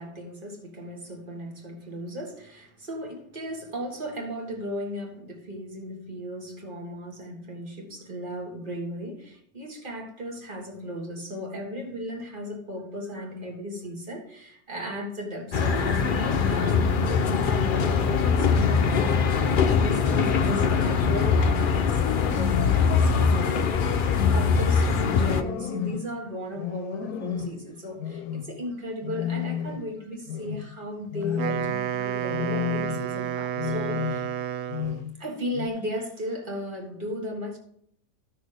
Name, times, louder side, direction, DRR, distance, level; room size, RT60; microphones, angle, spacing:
voice 1, 0.0-23.9 24.3-34.2 35.2-37.6, equal, 35° right, 2.0 m, -36 dB
sound 1, 15.5-25.4, left 5 dB, 50° left, 0.6 m, -22 dB
Lion loud, 16.0-16.9 17.6-19.0 19.6-20.9 21.5-22.8 23.3-24.6 25.0-26.1 26.6-27.6 28.0-28.6 29.0-29.9 30.3-30.7 31.1-31.9 32.3-33.1 33.6-34.4 34.7-35.2 35.5-35.7, left 8 dB, 80° left, 1.0 m, -33 dB
Wind instrument woodwind instrument, 31.2-35.1, right 10 dB, 70° right, 0.6 m, -30 dB
14.5 x 6.3 x 3.4 m
omnidirectional pair, 1.6 m